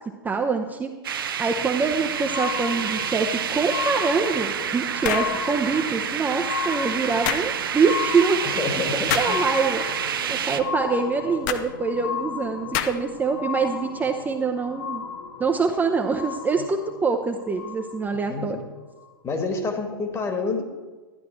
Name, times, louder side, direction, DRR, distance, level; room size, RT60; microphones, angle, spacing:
voice 1, 0.2-0.9 1.4-8.5 8.9-9.8 10.3-15.0 15.4-18.6, right 4 dB, 15° right, 3 dB, 0.7 m, -25 dB
sound 1, 1.0-10.6, right 8 dB, 70° right, 0.8 m, -28 dB
sound 2, 1.4-18.3 19.0-19.1, left 6 dB, 90° left, 2.4 m, -34 dB
sound 3, 5.0-5.4 7.3-7.5 9.1-9.4 11.5-11.7 12.7-13.1, left 10 dB, 50° left, 0.8 m, -26 dB
voice 2, 8.4-9.4 16.6-16.7 18.3-18.6 19.2-20.6, left 4 dB, 25° left, 5 dB, 1.6 m, -28 dB
12.5 x 9.5 x 4.4 m, 1.3 s
figure-of-eight pair, 100°, 12 cm